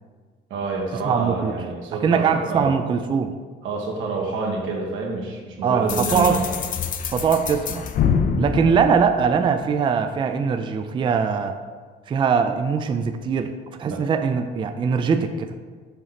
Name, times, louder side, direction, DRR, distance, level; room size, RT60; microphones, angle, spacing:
voice 1, 0.5-2.7 3.6-6.4 13.8-14.1, right 3 dB, 90° right, 0 dB, 1.5 m, -28 dB
voice 2, 1.0-1.5 2.0-3.3 5.6-6.5 7.1-7.9 8.4-11.6 12.1-13.5 13.8-15.6, right 6 dB, 25° right, 8 dB, 0.3 m, -21 dB
sound 1, 5.9-9.7, left 6 dB, 45° left, 0.5 m, -26 dB
6.5 x 3.9 x 5.9 m, 1.5 s
cardioid pair, 160°, 20 cm